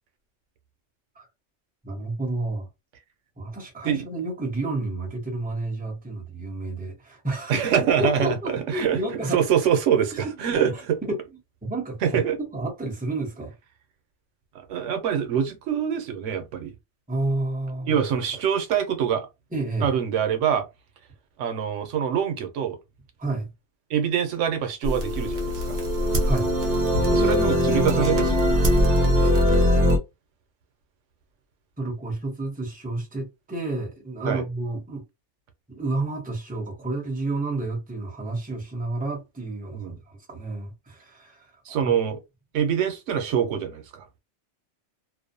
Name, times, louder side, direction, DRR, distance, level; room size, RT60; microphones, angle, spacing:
voice 1, 1.8-2.7 3.4-7.6 8.0-9.5 10.2-10.8 11.1-12.2 12.5-13.5 17.1-18.0 19.5-19.9 23.2-23.5 26.3-26.5 31.8-35.0 35.7-41.9, right 2 dB, 10° right, 0.7 m, -30 dB
voice 2, 7.5-9.0 9.3-11.0 12.0-12.4 14.5-16.7 17.9-19.3 19.8-20.7 21.4-22.8 23.9-25.8 27.1-28.6 34.2-34.4 39.7-40.0 41.7-42.2 42.5-44.0, right 8 dB, 90° right, 1.0 m, -25 dB
sound 1, 24.8-30.0, equal, 50° right, 0.9 m, -21 dB
2.6 x 2.1 x 2.5 m
omnidirectional pair, 1.2 m